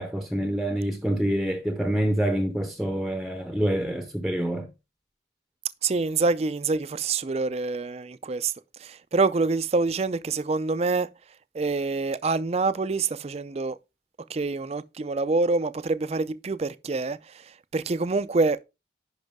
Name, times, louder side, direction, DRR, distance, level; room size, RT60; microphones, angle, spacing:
voice 1, 0.0-4.7, right 1 dB, ahead, 0.7 m, -26 dB
voice 2, 5.8-8.5 8.8-11.1 11.5-13.8 14.3-18.6, right 3 dB, 35° right, 0.4 m, -26 dB
10.5 x 4.9 x 3.6 m
head